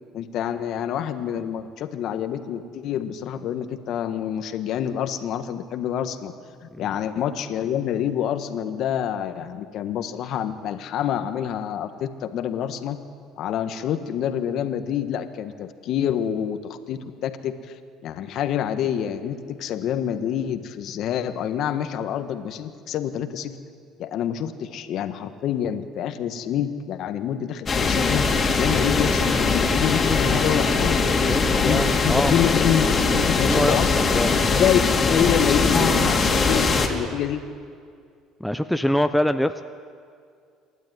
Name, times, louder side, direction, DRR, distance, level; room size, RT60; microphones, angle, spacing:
voice 1, 0.1-6.3 6.6-13.0 13.4-17.7 18.0-23.6 24.0-28.3 28.6-31.0 31.5-32.9 33.1-34.8 35.1-37.4, left 9 dB, 65° left, 9 dB, 1.5 m, -27 dB
sound 1, 27.7-36.9, left 4 dB, 30° left, 3.1 m, -21 dB
voice 2, 31.1-32.3 33.4-34.4 38.4-39.6, left 1 dB, 5° left, 9 dB, 0.7 m, -24 dB
27.5 x 12.0 x 9.6 m, 2.2 s
supercardioid pair, 90°, 0 cm